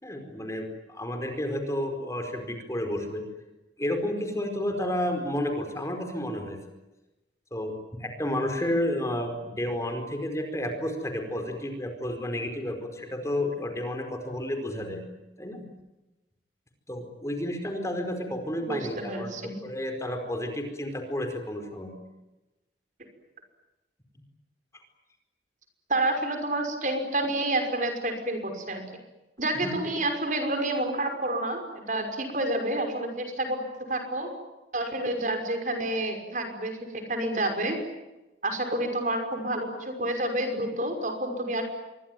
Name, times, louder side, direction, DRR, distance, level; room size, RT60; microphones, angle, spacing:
voice 1, 0.0-3.2 3.8-6.6 7.5-7.7 8.0-15.0 15.4-15.7 16.9-19.3 19.6-21.9 29.5-29.7, left 1 dB, 15° left, 5 dB, 4.8 m, -31 dB
voice 2, 18.6-19.6 25.9-28.8 29.4-33.6 33.9-34.3 34.7-37.8 38.4-41.6, right 1 dB, 45° right, 6 dB, 5.8 m, -29 dB
26.5 x 23.5 x 9.2 m, 1.0 s
head